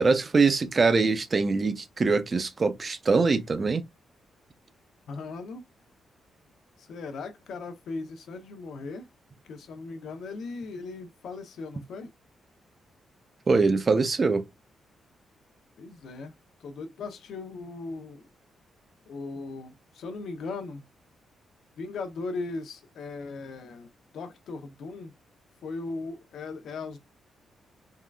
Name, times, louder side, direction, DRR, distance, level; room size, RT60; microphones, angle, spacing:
voice 1, 0.0-3.8 13.5-14.4, right 4 dB, 25° right, 0.4 m, -23 dB
voice 2, 5.1-5.6 6.8-9.1 9.5-12.1 15.8-16.3 16.6-18.3 19.1-20.8 21.8-25.1 25.6-27.0, left 3 dB, 65° left, 0.8 m, -38 dB
3.7 x 2.4 x 2.2 m
wide cardioid pair, 175°, 0 cm